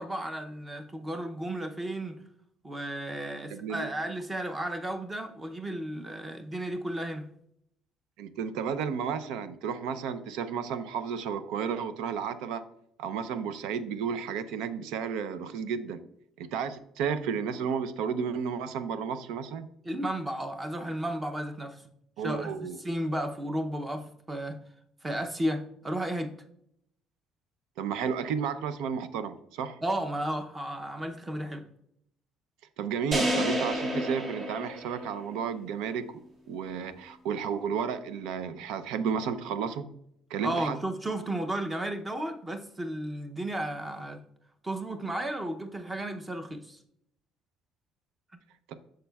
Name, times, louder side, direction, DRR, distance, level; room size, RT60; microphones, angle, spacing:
voice 1, 0.0-2.2 2.6-7.3 19.8-21.8 22.2-24.6 25.0-26.3 29.8-31.7 40.4-44.2 44.6-46.8, right 1 dB, 15° right, 6 dB, 0.6 m, -33 dB
voice 2, 3.5-3.9 8.2-12.6 13.0-16.0 16.4-19.7 22.2-22.8 27.8-29.8 32.8-36.1 36.5-39.9 40.3-40.8 48.7-48.8, right 7 dB, 85° right, 12 dB, 0.5 m, -32 dB
sound 1, 33.1-35.4, equal, 35° right, 2.9 m, -30 dB
8.3 x 6.5 x 2.3 m, 0.73 s
cardioid pair, 160°, 0 cm